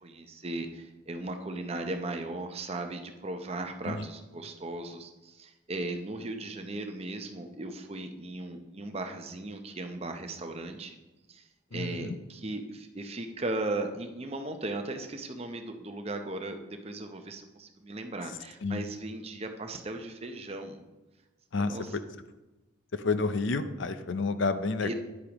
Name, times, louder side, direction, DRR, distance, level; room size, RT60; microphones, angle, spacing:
voice 1, 0.0-11.0 11.3-11.4 11.7-20.8 21.6-22.0 24.8-24.9, right 2 dB, 30° right, 5 dB, 0.7 m, -37 dB
voice 2, 11.7-12.2 18.6-18.8 21.5-22.0 22.9-24.9, left 3 dB, 65° left, 11 dB, 0.5 m, -30 dB
10.0 x 8.3 x 3.0 m, 1.1 s
head